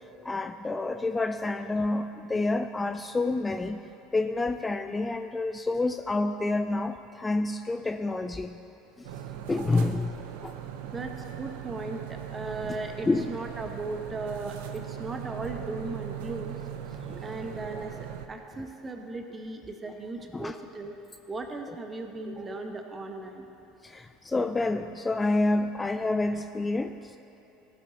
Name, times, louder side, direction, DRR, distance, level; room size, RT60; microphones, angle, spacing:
voice 1, 0.2-3.8 4.1-8.6 9.0-9.1 9.5-10.2 10.4-10.5 13.1-13.3 17.1-17.2 20.3-20.6 23.8-27.2, left 2 dB, 20° left, 8 dB, 0.3 m, -28 dB
sound 1, 9.0-18.3, right 10 dB, 75° right, 0.6 m, -39 dB
voice 2, 9.5-9.8 10.8-16.5 17.2-20.9 21.3-23.5, right 2 dB, 25° right, 4 dB, 1.1 m, -37 dB
15.0 x 7.9 x 2.9 m, 2.9 s
hypercardioid pair, 85°, 0 cm